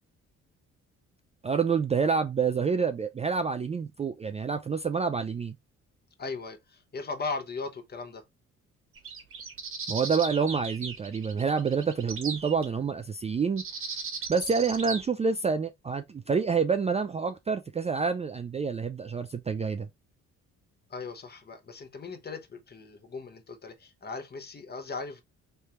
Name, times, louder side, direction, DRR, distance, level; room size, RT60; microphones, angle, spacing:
voice 1, 1.4-5.6 9.9-13.6 14.3-19.9, right 5 dB, 20° right, 0.3 m, -28 dB
voice 2, 6.2-8.2 20.9-25.2, left 4 dB, 35° left, 0.9 m, -38 dB
sound 1, 9.0-12.7 13.6-15.0, right 5 dB, 45° right, 1.1 m, -37 dB
3.3 x 2.3 x 4.2 m
cardioid pair, 90°, 30 cm